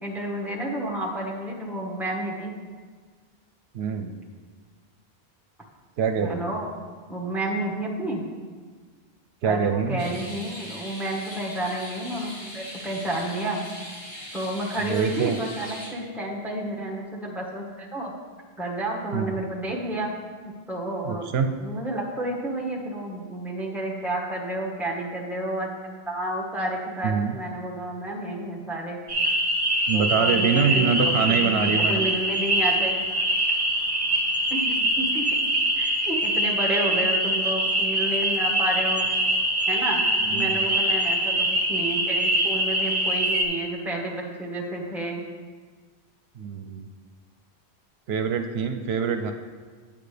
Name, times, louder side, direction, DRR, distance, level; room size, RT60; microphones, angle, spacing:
voice 1, 0.0-2.5 6.2-6.7 7.1-8.2 9.4-13.6 14.3-18.1 18.6-20.1 20.4-21.3 21.6-25.7 26.1-29.0 29.9-31.1 31.4-33.1 34.5-39.0 39.7-40.0 40.3-45.2, right 1 dB, ahead, -3 dB, 1.3 m, -30 dB
voice 2, 3.7-4.2 6.0-6.4 9.4-10.1 14.8-15.4 19.1-19.4 21.0-21.5 27.0-27.4 29.9-32.1 40.2-40.7 46.4-46.9 48.1-49.3, right 6 dB, 80° right, 6 dB, 0.8 m, -25 dB
sound 1, 10.0-15.9, equal, 55° left, 1.7 m, -40 dB
sound 2, 29.1-43.4, right 1 dB, 25° right, 1.0 m, -24 dB
8.7 x 8.7 x 3.3 m, 1.5 s
omnidirectional pair, 1.0 m